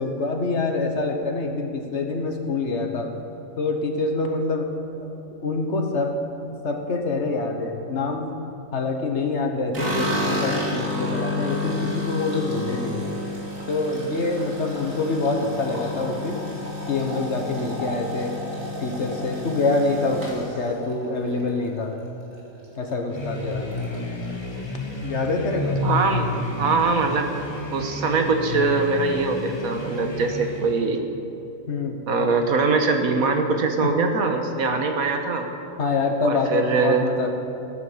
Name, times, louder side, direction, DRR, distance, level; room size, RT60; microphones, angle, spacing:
voice 1, 0.0-3.1 3.6-5.1 5.4-6.2 6.6-8.4 8.7-13.1 13.7-16.4 16.9-18.3 18.8-21.9 22.8-23.7 25.0-25.8 31.7-32.0 33.8-34.0 35.8-37.3, left 3 dB, 55° left, 4 dB, 1.5 m, -26 dB
sound 1, 9.7-22.0 22.3-22.9 23.2-23.3 23.6-24.3, left 1 dB, 65° right, 2.8 m, -30 dB
sound 2, 23.1-30.9, left 2 dB, 20° left, 1.3 m, -31 dB
voice 2, 25.8-26.3 26.6-27.3 27.7-31.0 32.1-35.5 36.2-37.1, right 4 dB, 85° right, 5 dB, 1.6 m, -22 dB
14.5 x 9.7 x 7.3 m, 2.8 s
omnidirectional pair, 1.5 m